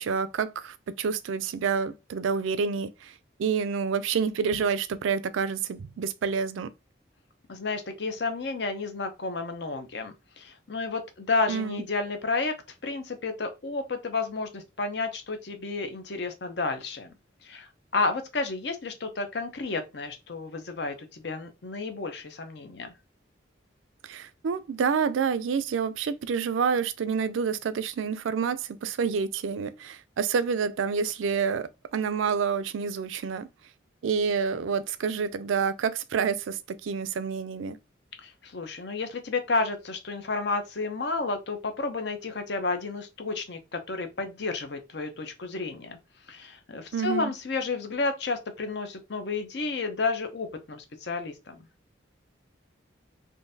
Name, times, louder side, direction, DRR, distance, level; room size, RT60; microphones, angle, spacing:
voice 1, 0.0-6.7 11.5-11.8 24.0-33.5 34.0-37.8 46.9-47.3, right 6 dB, 85° right, 0.4 m, -28 dB
voice 2, 7.5-12.5 12.8-17.1 17.4-22.9 38.2-46.0 46.3-51.6, left 3 dB, 60° left, 0.6 m, -31 dB
3.7 x 2.7 x 2.6 m
head